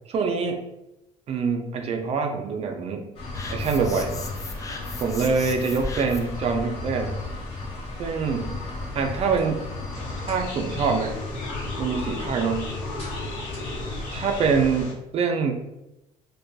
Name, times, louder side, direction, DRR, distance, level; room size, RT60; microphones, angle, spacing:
voice 1, 0.1-0.6 1.3-3.1 3.5-4.1 5.0-7.2 8.0-8.5 9.0-9.6 10.2-11.2 11.8-12.7 14.1-15.5, right 5 dB, 45° right, 4 dB, 0.4 m, -25 dB
sound 1, 3.1-14.8, left 2 dB, 40° left, 1.0 m, -34 dB
sound 2, 3.3-6.4, left 3 dB, 20° left, 0.3 m, -39 dB
sound 3, 9.9-14.9, left 2 dB, 85° left, 0.6 m, -35 dB
2.5 x 2.2 x 2.3 m, 0.91 s
supercardioid pair, 90°, 15 cm